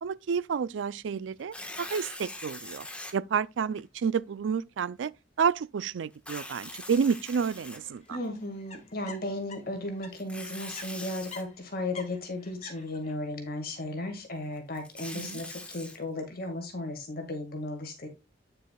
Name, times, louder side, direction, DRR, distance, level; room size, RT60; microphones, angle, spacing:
voice 1, 0.0-2.9 3.1-5.1 5.4-8.2 15.1-15.4, right 6 dB, 80° right, 0.4 m, -30 dB
Tearing, 1.4-3.1 3.8-3.9 6.1-8.3 10.1-11.4 14.6-16.0, left 1 dB, 5° left, 1.3 m, -42 dB
sound 1, 7.8-10.1 10.4-13.1, left 4 dB, 40° left, 1.7 m, -47 dB
voice 2, 8.1-18.1, left 1 dB, 55° left, 1.8 m, -35 dB
9.2 x 6.6 x 2.3 m
head